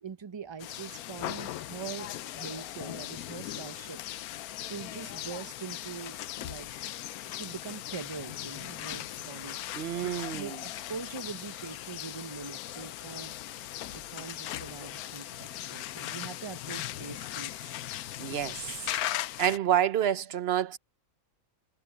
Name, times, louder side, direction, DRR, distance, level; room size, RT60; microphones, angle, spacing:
voice 1, 0.0-2.1 2.3-4.0 4.6-6.7 7.3-9.6 10.0-13.3 13.9-17.8 18.4-18.5, right 6 dB, 30° right, 0.5 m, -43 dB
sound 1, 0.6-19.6, left 13 dB, 90° left, 1.1 m, -39 dB
voice 2, 9.7-10.6 18.2-18.7 19.4-20.8, right 10 dB, 55° right, 0.8 m, -28 dB
omnidirectional pair, 1.5 m